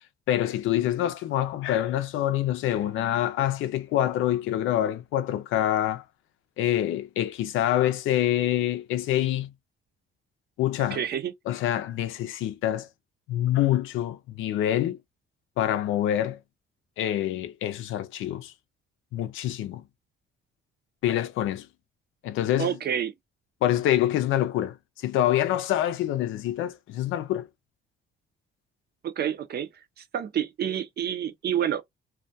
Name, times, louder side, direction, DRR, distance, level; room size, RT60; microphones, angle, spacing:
voice 1, 0.3-6.0 6.6-9.5 10.6-11.0 11.5-12.9 13.3-15.0 15.6-16.4 17.0-18.5 19.1-19.8 21.0-21.7 22.2-22.8 23.6-27.5, left 12 dB, 85° left, 0.5 m, -26 dB
voice 2, 10.9-11.3 22.6-23.1 29.0-29.7 30.0-31.8, right 9 dB, 55° right, 0.6 m, -28 dB
2.3 x 2.1 x 2.6 m
cardioid pair, 90°, 20 cm